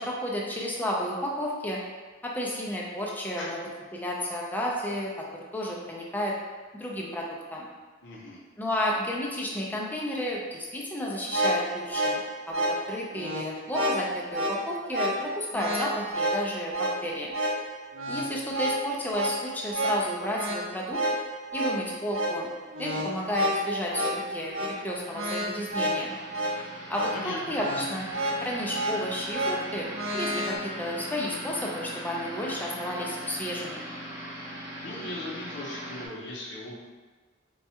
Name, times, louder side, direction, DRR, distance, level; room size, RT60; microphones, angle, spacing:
voice 1, 0.0-1.8 2.2-3.6 3.9-5.2 5.5-6.3 6.8-7.7 8.6-12.2 12.5-17.3 18.1-21.0 21.5-22.5 22.8-26.2 26.9-28.1 28.4-33.8, left 1 dB, 10° left, -3 dB, 0.4 m, -32 dB
voice 2, 8.0-8.4 26.6-26.7 27.1-27.6 34.8-36.8, left 2 dB, 65° left, -3 dB, 0.6 m, -38 dB
sound 1, 11.1-30.6, right 1 dB, 80° right, 0.6 m, -30 dB
sound 2, 22.5-36.1, equal, 15° right, 0.7 m, -41 dB
4.3 x 2.3 x 2.7 m, 1.3 s
head